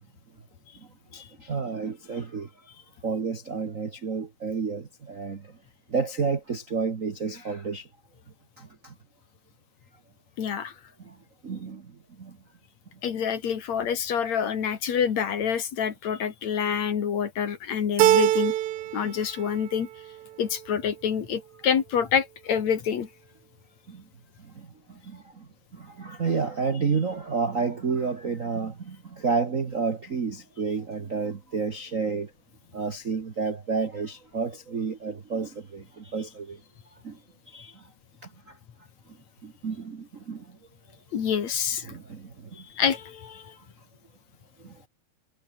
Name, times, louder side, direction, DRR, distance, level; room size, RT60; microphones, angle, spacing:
voice 1, 1.1-2.5 3.0-5.6 5.9-7.9 8.6-8.9 11.0-11.2 11.4-12.4 23.9-24.0 24.4-32.3 32.7-36.6 37.0-37.2 37.5-37.8 38.5-38.6 39.4-40.6 41.8-42.6 44.6-44.8, right 5 dB, 65° right, 0.7 m, -31 dB
voice 2, 10.4-10.7 13.0-18.5 18.9-19.9 20.4-23.1 41.1-41.9 42.8-43.5, left 7 dB, 55° left, 3.1 m, -27 dB
Keyboard (musical), 18.0-19.1 19.4-20.2, right 14 dB, 90° right, 3.0 m, -23 dB
omnidirectional pair, 4.0 m